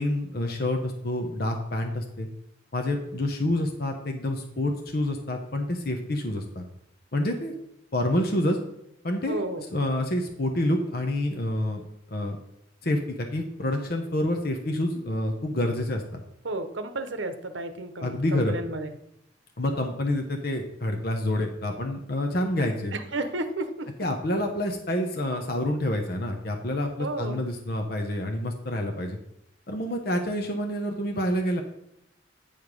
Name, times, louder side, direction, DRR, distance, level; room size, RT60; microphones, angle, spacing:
voice 1, 0.0-2.3 2.7-6.6 7.1-7.6 7.9-8.6 9.0-9.4 9.7-11.8 12.1-12.4 12.8-16.2 18.0-18.6 19.6-23.0 24.0-29.2 29.7-31.6, left 1 dB, 55° left, 3 dB, 0.9 m, -28 dB
voice 2, 9.3-9.6 16.4-18.9 22.9-23.9 27.0-27.4, right 2 dB, 80° right, 8 dB, 0.9 m, -32 dB
9.1 x 4.9 x 5.3 m, 0.80 s
head